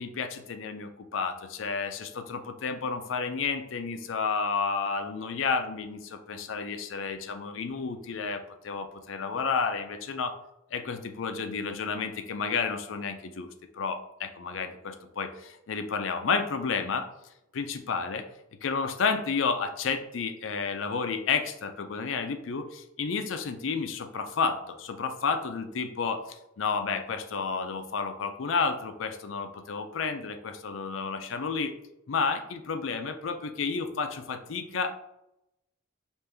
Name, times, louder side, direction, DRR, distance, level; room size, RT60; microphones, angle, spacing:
voice 1, 0.0-10.3 10.7-17.1 17.5-18.3 18.6-31.7 32.1-34.9, left 5 dB, 70° left, 8 dB, 0.5 m, -31 dB
5.1 x 2.6 x 3.3 m, 0.86 s
head